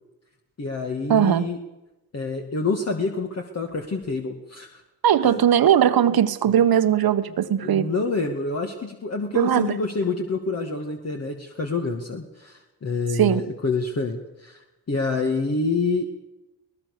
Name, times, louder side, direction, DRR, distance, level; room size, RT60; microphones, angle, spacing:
voice 1, 0.6-1.6 2.1-4.8 5.2-5.4 7.6-16.2, left 3 dB, 40° left, 3 dB, 2.3 m, -27 dB
voice 2, 1.1-1.5 5.0-7.9 9.3-9.8 13.1-13.4, right 9 dB, 60° right, 11 dB, 1.3 m, -19 dB
23.0 x 19.0 x 6.8 m, 0.98 s
cardioid pair, 95°, 40 cm